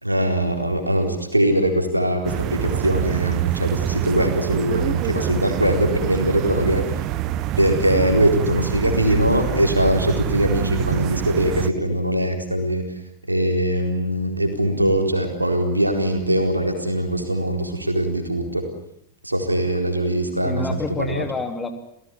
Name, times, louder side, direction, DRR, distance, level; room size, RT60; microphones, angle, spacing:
voice 1, 0.0-6.8 7.6-12.8 13.3-18.6 19.2-20.7 21.1-21.2, right 1 dB, 85° right, 5 dB, 4.2 m, -21 dB
sound 1, 2.2-11.7, right 13 dB, 40° right, 1.0 m, -26 dB
voice 2, 8.5-9.2 20.4-21.7, left 3 dB, 15° left, 7 dB, 3.2 m, -29 dB
30.0 x 16.5 x 9.7 m, 0.77 s
figure-of-eight pair, 90°, 0 cm